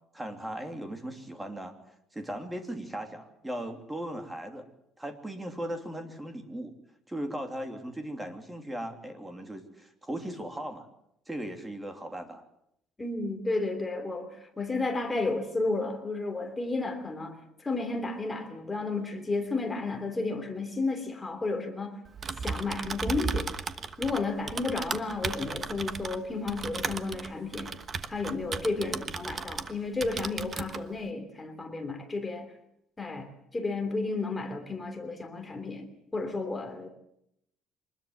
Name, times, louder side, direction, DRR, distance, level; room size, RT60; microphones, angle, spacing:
voice 1, 0.1-1.7 2.1-4.7 5.0-6.7 7.1-10.9 11.3-12.4 28.8-29.0, right 1 dB, 10° right, 3.0 m, -38 dB
voice 2, 13.0-17.4 17.6-21.9 22.4-23.5 24.0-27.7 28.1-32.5 33.0-36.9, left 3 dB, 15° left, 3.0 m, -32 dB
Typing, 22.1-29.7 30.0-30.8, right 5 dB, 30° right, 1.2 m, -35 dB
24.5 x 20.5 x 7.6 m
cardioid pair, 160°, 0 cm